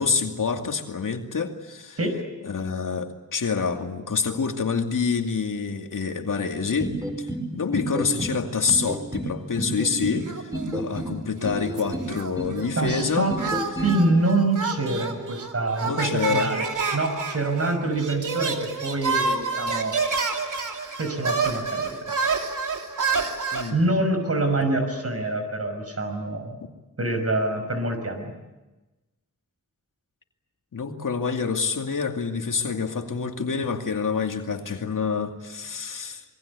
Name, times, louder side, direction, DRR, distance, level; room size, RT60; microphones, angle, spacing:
voice 1, 0.0-2.0 2.4-13.3 15.8-16.5 23.5-23.9 30.7-36.2, left 5 dB, 85° left, 4 dB, 2.5 m, -27 dB
sound 1, 6.8-7.4 7.7-8.3 8.7-9.3 9.6-10.2 10.5-11.1 11.4-12.1 12.4-13.0 13.3-14.0, right 1 dB, 10° right, 5.8 m, -30 dB
sound 2, 10.3-11.1 11.4-12.7 13.4-23.7, right 4 dB, 75° right, 3.0 m, -28 dB
voice 2, 12.8-13.4 13.8-16.7 16.9-20.0 21.0-22.0 23.7-26.6 27.0-28.3, right 2 dB, 50° right, 6 dB, 5.8 m, -25 dB
27.0 x 22.5 x 8.4 m, 1.1 s
wide cardioid pair, 105°, 31 cm